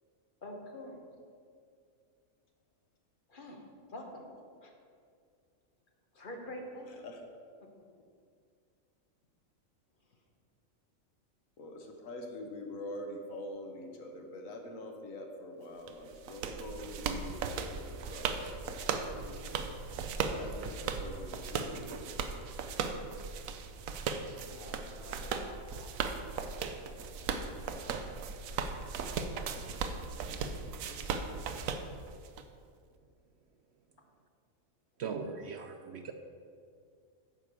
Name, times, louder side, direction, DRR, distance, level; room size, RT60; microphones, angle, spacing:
voice 1, 0.4-1.0 3.3-4.3 4.6-4.8 6.1-7.0 19.2-19.6 24.4-25.9 26.7-27.7 29.2-31.5 35.2-35.5, left 1 dB, 40° left, 1 dB, 1.3 m, -49 dB
voice 2, 6.9-7.2 11.6-19.8 20.3-22.5, left 1 dB, 75° left, 3 dB, 1.4 m, -45 dB
sound 1, 15.9-32.4, right 5 dB, 80° right, 1.0 m, -37 dB
voice 3, 35.0-36.1, right 5 dB, 65° right, 6 dB, 0.7 m, -39 dB
9.6 x 4.7 x 6.8 m, 2.2 s
omnidirectional pair, 1.4 m